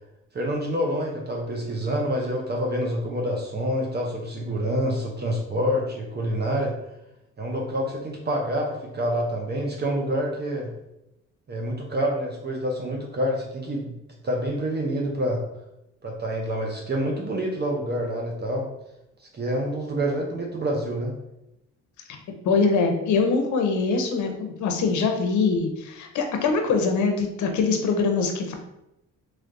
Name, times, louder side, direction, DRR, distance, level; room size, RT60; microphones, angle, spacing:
voice 1, 0.3-6.7 7.4-10.7 11.5-13.9 14.2-15.4 16.0-18.7 19.2-21.1, equal, 35° right, 0 dB, 0.7 m, -27 dB
voice 2, 22.4-28.5, left 4 dB, 70° left, 4 dB, 0.7 m, -23 dB
3.2 x 3.1 x 2.6 m, 0.88 s
cardioid pair, 90°, 30 cm